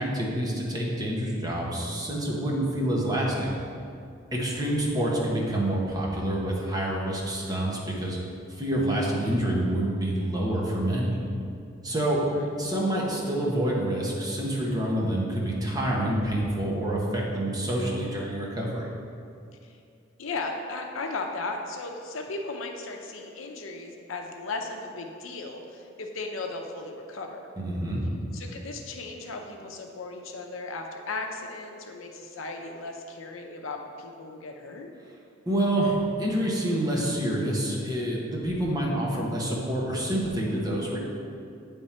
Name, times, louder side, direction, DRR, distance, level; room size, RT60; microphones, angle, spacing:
voice 1, 0.0-3.5 4.3-8.2 8.6-11.2 11.8-12.2 12.6-18.9 27.6-28.0 35.5-41.0, right 1 dB, 20° right, -4 dB, 1.0 m, -27 dB
voice 2, 20.2-27.4 28.3-34.9, left 3 dB, 80° left, 3 dB, 0.7 m, -36 dB
8.7 x 3.7 x 4.3 m, 2.4 s
head